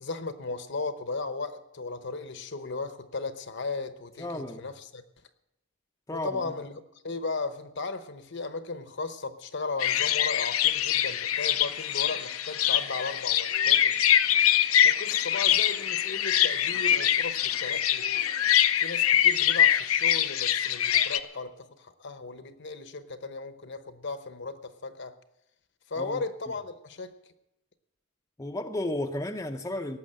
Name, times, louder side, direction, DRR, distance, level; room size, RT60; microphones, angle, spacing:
voice 1, 0.0-5.0 6.1-14.0 14.8-18.1 18.8-25.1 25.9-27.1, left 3 dB, 55° left, 0.9 m, -36 dB
voice 2, 4.2-4.7 6.1-6.4 26.0-26.2 28.4-30.0, left 1 dB, 15° left, 0.6 m, -33 dB
sound 1, 9.8-21.2, left 10 dB, 85° left, 0.7 m, -24 dB
18.0 x 7.2 x 8.8 m
head